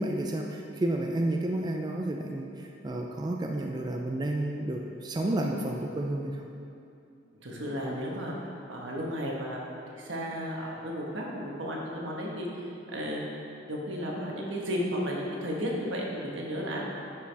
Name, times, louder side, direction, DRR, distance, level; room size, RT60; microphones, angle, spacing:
voice 1, 0.0-6.4, right 1 dB, 20° right, 1 dB, 0.4 m, -31 dB
voice 2, 7.4-16.9, equal, 80° right, -2 dB, 1.3 m, -34 dB
10.0 x 4.8 x 3.4 m, 2.7 s
head